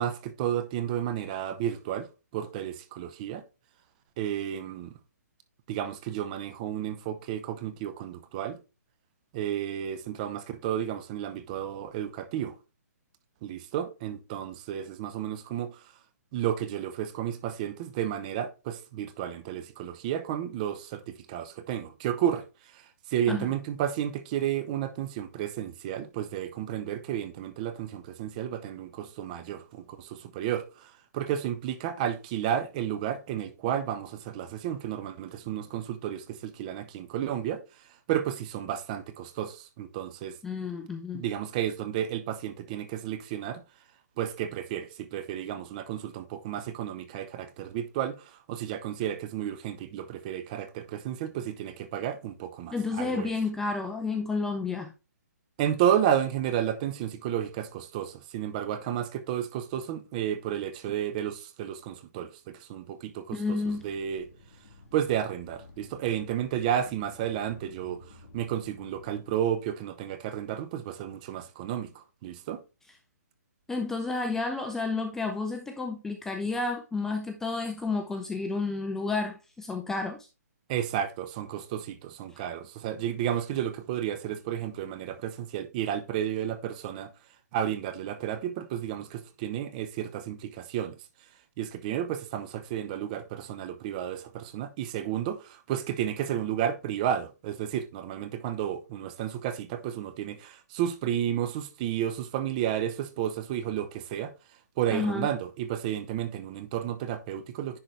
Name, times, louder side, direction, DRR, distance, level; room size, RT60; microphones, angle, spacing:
voice 1, 0.0-3.4 4.2-4.9 5.7-8.6 9.3-12.5 13.4-15.8 16.3-22.4 22.7-37.6 38.1-40.4 41.1-43.6 44.2-53.3 55.6-64.3 64.9-68.0 68.3-72.6 80.7-87.1 87.5-90.9 91.6-104.3 104.8-107.8, right 10 dB, 25° right, 0.8 m, -32 dB
voice 2, 40.4-41.2 52.7-54.9 63.3-63.8 73.7-80.3 104.9-105.3, left 3 dB, 5° left, 0.4 m, -31 dB
sound 1, 63.7-69.6, left 2 dB, 50° left, 2.6 m, -52 dB
10.5 x 4.0 x 3.2 m
hypercardioid pair, 155°, 9 cm